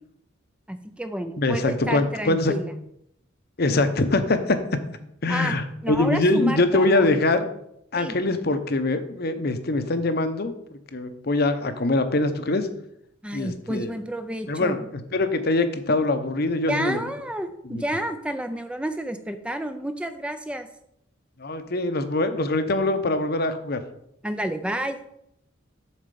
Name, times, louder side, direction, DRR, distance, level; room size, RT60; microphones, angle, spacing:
voice 1, 0.7-2.7 5.3-5.6 5.8-7.1 7.9-8.1 13.2-14.8 16.7-20.7 24.2-25.0, right 1 dB, 5° right, 9 dB, 0.4 m, -30 dB
voice 2, 1.4-2.6 3.6-4.6 5.2-7.4 7.9-10.5 10.9-12.7 13.3-13.9 14.5-17.0 17.6-17.8 21.4-23.8, left 2 dB, 50° left, 9 dB, 0.8 m, -23 dB
7.4 x 4.3 x 6.9 m, 0.75 s
head